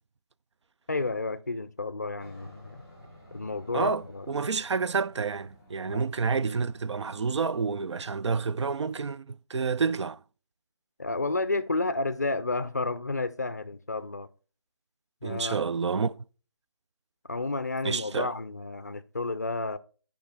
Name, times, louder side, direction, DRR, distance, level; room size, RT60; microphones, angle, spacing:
voice 1, 0.9-2.8 3.3-4.3 5.9-6.0 11.0-14.3 15.2-15.6 17.3-19.8, left 3 dB, 40° left, 0.4 m, -31 dB
Aircraft, 2.2-9.0, left 1 dB, 5° right, 3.8 m, -53 dB
voice 2, 3.7-10.2 15.2-16.2 17.8-18.3, right 5 dB, 85° right, 0.4 m, -29 dB
10.5 x 5.1 x 3.4 m
figure-of-eight pair, 180°, 14 cm